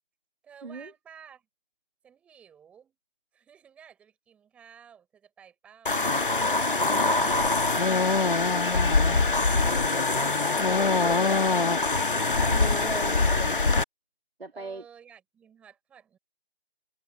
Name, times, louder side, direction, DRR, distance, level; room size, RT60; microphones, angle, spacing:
voice 1, 0.4-1.5 2.0-3.0 3.3-6.1 14.5-16.2, right 8 dB, 5° right, 7.4 m, -54 dB
sound 1, 5.9-13.8, left 3 dB, 55° left, 1.9 m, -23 dB
voice 2, 6.8-7.3 12.4-13.6 14.4-14.8, right 2 dB, 70° right, 3.0 m, -38 dB
figure-of-eight pair, 165°, 31 cm